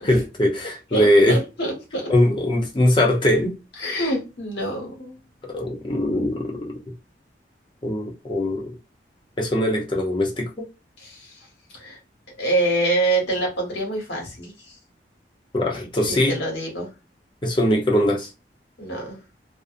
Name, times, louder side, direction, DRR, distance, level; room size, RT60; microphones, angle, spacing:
voice 1, 0.0-1.4 2.1-3.6 5.5-6.8 7.8-8.7 9.4-10.7 15.5-16.4 17.4-18.3, left 1 dB, 30° left, 0.6 m, -21 dB
voice 2, 0.9-2.1 3.8-5.2 11.0-11.3 11.8-12.0 12.4-14.5 16.0-16.9 18.8-19.2, right 2 dB, 80° left, 1.2 m, -25 dB
2.5 x 2.0 x 2.5 m
head